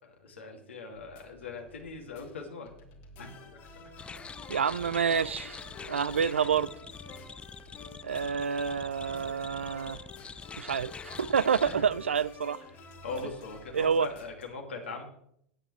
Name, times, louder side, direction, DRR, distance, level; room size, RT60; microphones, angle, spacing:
voice 1, 0.0-2.7 3.2-3.3 5.7-6.1 11.6-11.9 12.7-15.0, left 4 dB, 80° left, 2.7 m, -41 dB
sound 1, 0.9-14.5, left 2 dB, 55° left, 2.9 m, -55 dB
sound 2, 3.2-13.8, left 4 dB, 35° left, 3.0 m, -50 dB
sound 3, 4.0-11.8, left 5 dB, 15° left, 0.5 m, -45 dB
voice 2, 4.5-5.6 5.9-6.7 8.0-10.0 10.6-12.6 13.7-14.1, right 6 dB, 80° right, 0.4 m, -28 dB
18.0 x 8.4 x 3.4 m
figure-of-eight pair, 90°, 6 cm